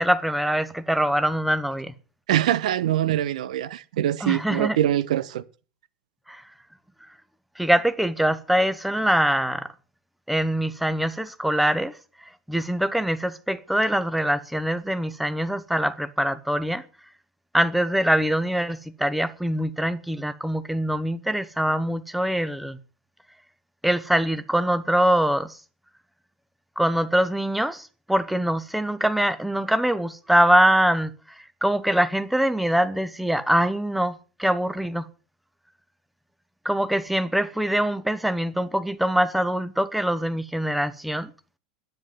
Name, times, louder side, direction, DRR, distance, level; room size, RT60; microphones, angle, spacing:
voice 1, 0.0-1.9 4.2-4.8 6.3-6.4 7.6-9.7 10.3-11.9 12.5-16.8 17.5-22.8 23.8-25.6 26.8-35.1 36.6-41.3, right 1 dB, ahead, 1.1 m, -23 dB
voice 2, 2.3-5.4, right 12 dB, 60° right, 0.8 m, -23 dB
10.5 x 9.2 x 9.4 m
figure-of-eight pair, 85°, 4 cm